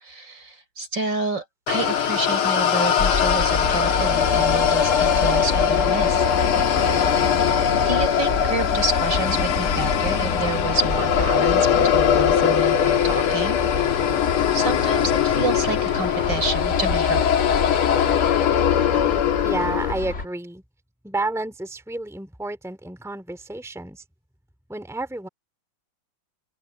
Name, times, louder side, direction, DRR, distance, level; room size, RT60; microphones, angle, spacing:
voice 1, 0.0-6.3 7.9-11.7 11.9-14.1 14.5-17.4, right 2 dB, 55° right, 6.3 m, -29 dB
sound 1, 1.7-19.9, left 8 dB, 80° left, 2.2 m, -21 dB
sound 2, 3.0-20.2, left 3 dB, 35° left, 2.2 m, -29 dB
voice 2, 19.4-20.6 21.0-24.0 24.7-25.3, right 2 dB, ahead, 3.2 m, -30 dB
open air
omnidirectional pair, 2.4 m